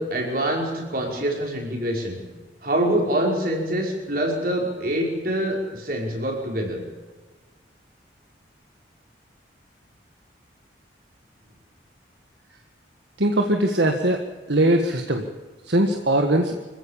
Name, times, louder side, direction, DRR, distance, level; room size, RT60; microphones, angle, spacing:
voice 1, 0.0-2.2 2.6-6.8, right 1 dB, 50° right, 0 dB, 5.4 m, -25 dB
voice 2, 13.2-14.2 14.5-15.2 15.7-16.5, right 1 dB, 70° right, 4 dB, 1.7 m, -20 dB
25.5 x 16.0 x 7.4 m, 1.3 s
head